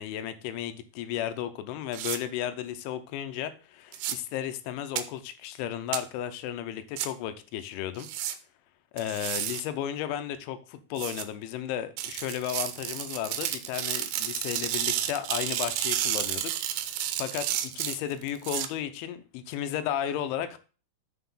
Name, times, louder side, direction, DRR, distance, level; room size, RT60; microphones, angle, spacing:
voice 1, 0.0-8.1 8.9-16.5 16.9-20.6, left 11 dB, 85° left, 11 dB, 3.0 m, -34 dB
sound 1, 1.9-2.2 3.9-4.2 5.0-5.1 5.9-6.0 7.0-7.1 8.0-8.4 9.0-9.6 11.0-11.2 12.0-18.7, right 11 dB, 80° right, 2.8 m, -31 dB
6.8 x 5.8 x 5.5 m, 0.36 s
omnidirectional pair, 5.5 m